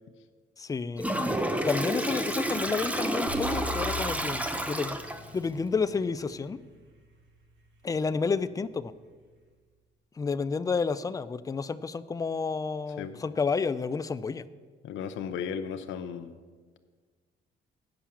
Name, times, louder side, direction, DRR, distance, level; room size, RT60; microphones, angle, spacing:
voice 1, 0.6-1.0 1.6-5.0 5.3-6.6 7.8-8.9 10.2-14.4, left 5 dB, 20° left, 14 dB, 0.3 m, -30 dB
Toilet flush, 1.0-5.3, right 1 dB, 5° right, 0.7 m, -30 dB
sound 1, 3.3-7.8, left 1 dB, 70° right, 1.5 m, -41 dB
voice 2, 14.8-16.4, left 7 dB, 80° left, 8 dB, 0.6 m, -35 dB
8.9 x 5.6 x 7.1 m, 1.5 s
cardioid pair, 90°, 20 cm